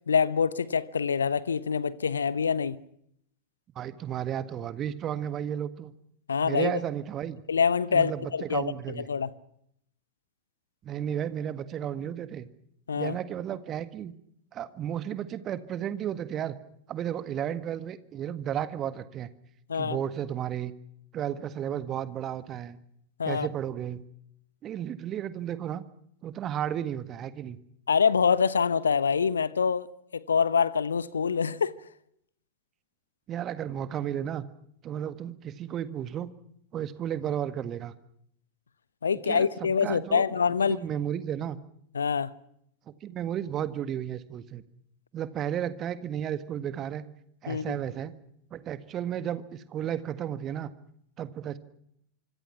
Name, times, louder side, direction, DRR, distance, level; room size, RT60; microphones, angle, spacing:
voice 1, 0.1-2.8 6.3-6.8 7.5-9.3 12.9-13.2 19.7-20.0 23.2-23.5 27.9-29.9 30.1-31.7 39.0-40.8 41.9-42.3 47.5-47.8, left 6 dB, 70° left, 1.0 m, -25 dB
voice 2, 3.8-6.0 6.4-7.4 7.9-9.1 10.8-12.5 12.9-14.2 14.5-16.6 16.9-19.3 19.7-20.7 21.1-22.8 23.2-24.0 24.6-25.8 26.2-27.6 33.3-34.5 34.8-36.3 36.7-37.9 39.3-40.2 40.7-41.6 42.9-44.6 45.1-47.1 47.4-48.1 48.5-50.7 51.2-51.6, right 10 dB, 30° right, 1.7 m, -33 dB
25.5 x 25.0 x 5.9 m
figure-of-eight pair, 90°, 0 cm